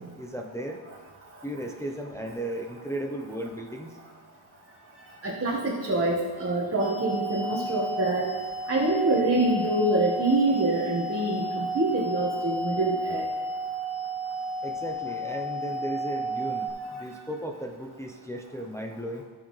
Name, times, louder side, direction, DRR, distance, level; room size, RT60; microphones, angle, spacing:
voice 1, 0.2-0.8 1.4-4.0 14.6-19.2, right 1 dB, 5° left, 2 dB, 0.7 m, -35 dB
voice 2, 5.2-8.3 8.7-13.2, right 2 dB, 30° right, -4 dB, 1.5 m, -25 dB
sound 1, 6.8-16.7, right 1 dB, 85° left, 2.5 m, -32 dB
18.0 x 6.4 x 3.2 m, 1.5 s
cardioid pair, 105°, 47 cm